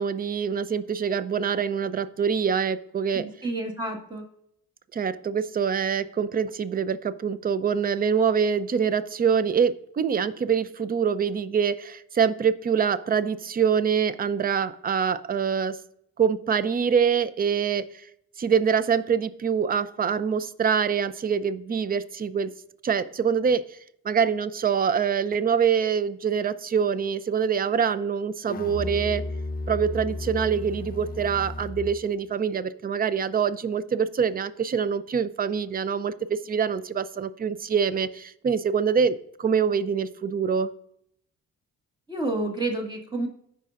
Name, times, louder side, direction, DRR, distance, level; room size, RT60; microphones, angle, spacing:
voice 1, 0.0-3.2 4.9-15.8 16.2-17.8 18.4-22.5 22.8-23.8 24.0-29.2 29.7-40.7, right 7 dB, 30° right, 15 dB, 0.5 m, -25 dB
voice 2, 3.1-4.2 42.1-43.3, right 2 dB, 15° right, 1 dB, 1.7 m, -29 dB
Musical instrument, 28.5-32.0, left 2 dB, 30° left, 0.7 m, -33 dB
15.5 x 5.3 x 2.5 m, 0.73 s
cardioid pair, 90°, 30 cm